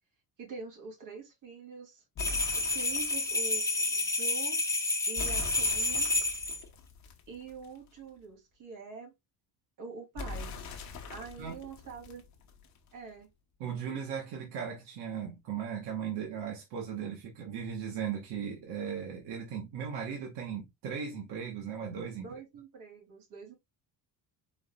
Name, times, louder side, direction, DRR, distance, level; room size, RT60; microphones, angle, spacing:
voice 1, 0.4-2.0 2.5-4.6 5.1-6.1 7.3-9.1 9.8-10.5 11.1-12.2 12.9-13.3 22.1-23.5, right 5 dB, 50° right, 2.6 m, -45 dB
sound 1, 2.2-3.4 5.2-7.9 10.2-12.9, left 4 dB, 40° left, 1.0 m, -43 dB
sound 2, 2.2-6.6, left 2 dB, 5° left, 0.7 m, -30 dB
voice 2, 13.6-22.3, right 7 dB, 75° right, 1.4 m, -37 dB
4.9 x 4.0 x 2.2 m
cardioid pair, 170°, 42 cm